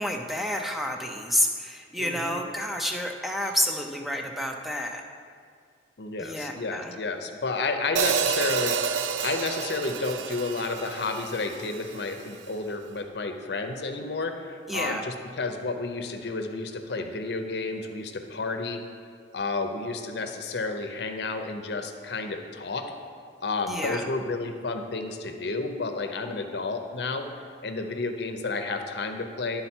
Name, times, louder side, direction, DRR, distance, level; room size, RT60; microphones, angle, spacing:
voice 1, 0.0-5.0 6.2-7.0 14.7-15.1 23.7-24.1, equal, ahead, 2 dB, 0.4 m, -29 dB
voice 2, 2.0-2.4 6.0-18.8 19.3-22.9 23.4-27.3 27.6-29.6, left 3 dB, 65° left, 6 dB, 0.6 m, -31 dB
Hi-hat, 8.0-12.1, right 7 dB, 75° right, 0.3 m, -29 dB
11.5 x 3.9 x 4.4 m, 2.1 s
head